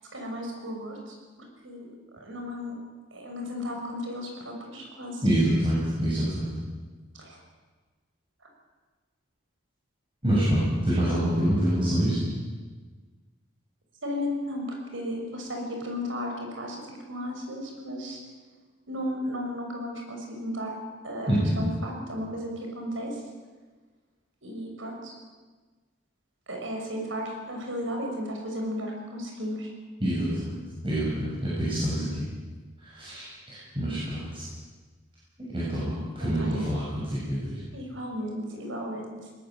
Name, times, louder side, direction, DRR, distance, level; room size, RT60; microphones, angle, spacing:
voice 1, 0.1-1.2 1.6-1.9 2.2-2.8 3.1-5.2 7.1-7.4 14.0-14.6 14.9-16.8 17.1-18.2 18.9-20.7 21.0-23.2 24.4-25.1 26.5-29.7 36.2-36.7 37.7-39.1, equal, 85° right, 1 dB, 6.3 m, -34 dB
voice 2, 5.2-6.5 10.2-12.2 21.3-21.5 30.0-30.6 30.8-32.1 32.8-34.4 35.5-36.8 37.1-37.6, right 1 dB, 25° right, -8 dB, 7.2 m, -26 dB
21.5 x 19.5 x 7.7 m, 1.4 s
head